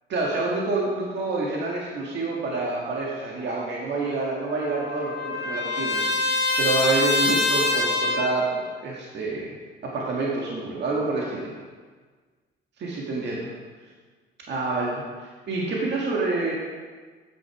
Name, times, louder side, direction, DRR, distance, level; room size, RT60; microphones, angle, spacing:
voice 1, 0.1-8.5 8.8-9.5 9.8-11.5 12.8-13.5 14.5-16.5, right 3 dB, 60° right, -3 dB, 1.7 m, -28 dB
Trumpet, 4.0-8.4, left 2 dB, 60° left, 1.8 m, -25 dB
9.0 x 6.6 x 4.7 m, 1.5 s
cardioid pair, 90°, 20 cm